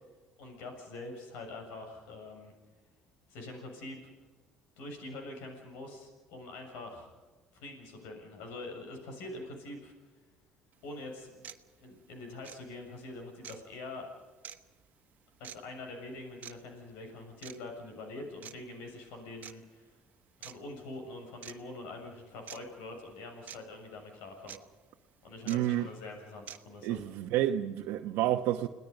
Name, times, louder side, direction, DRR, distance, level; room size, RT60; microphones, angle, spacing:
voice 1, 0.4-2.5 3.3-4.0 4.8-7.1 7.5-9.9 10.8-11.4 11.8-14.1 15.4-20.0 20.4-24.6 25.2-27.0, left 2 dB, 80° left, 6.8 m, -44 dB
sound 1, 10.7-10.8 11.4-11.6 12.4-12.6 13.4-13.6 14.4-14.6 15.4-15.6 16.4-16.5 17.4-17.6 18.4-18.5 19.4-19.5 20.4-20.6 21.4-21.5 22.5-22.6 23.5-23.6 24.5-24.6 25.5-25.6 26.5-26.6, right 10 dB, 50° right, 1.4 m, -45 dB
voice 2, 25.5-25.9 26.8-28.7, right 13 dB, 75° right, 1.0 m, -29 dB
30.0 x 19.0 x 5.4 m
supercardioid pair, 90°, 4 cm